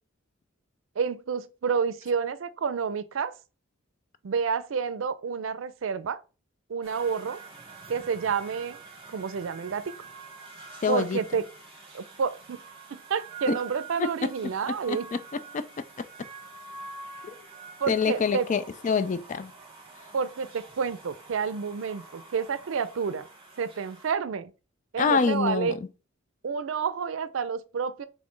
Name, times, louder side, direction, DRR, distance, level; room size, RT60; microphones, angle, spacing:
voice 1, 1.0-3.3 4.2-6.2 6.7-7.4 7.9-8.8 9.1-9.8 10.9-11.4 11.9-12.6 12.9-15.1 17.8-18.5 20.1-23.3 23.6-24.5 24.9-25.8 26.4-28.1, right 6 dB, 85° right, 0.4 m, -29 dB
sound 1, 6.8-24.1, right 4 dB, 30° right, 1.2 m, -46 dB
voice 2, 10.8-11.2 13.5-13.6 14.0-14.3 14.9-16.3 17.2-17.4 17.9-19.5 25.0-25.8, left 5 dB, 40° left, 0.4 m, -27 dB
4.2 x 3.2 x 3.2 m
head